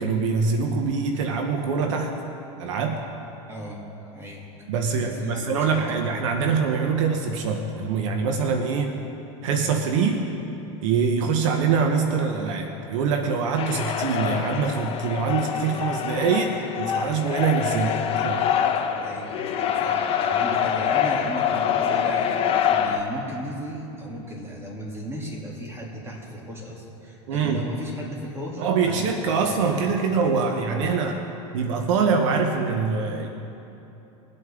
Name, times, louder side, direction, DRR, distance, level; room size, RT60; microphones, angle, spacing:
voice 1, 0.0-2.1 2.6-3.1 4.7-9.0 9.4-10.2 10.8-17.9 18.2-18.4 27.3-27.7 28.6-31.2 31.5-33.3, right 5 dB, 75° right, 5 dB, 1.1 m, -24 dB
voice 2, 3.5-4.5 4.9-6.1 17.7-18.1 19.0-19.4 19.8-29.9 30.6-30.9, equal, 15° right, -3 dB, 3.0 m, -36 dB
sound 1, 13.6-23.0, left 8 dB, 35° left, 1.0 m, -25 dB
21.5 x 8.0 x 3.8 m, 3.0 s
supercardioid pair, 120°, 16 cm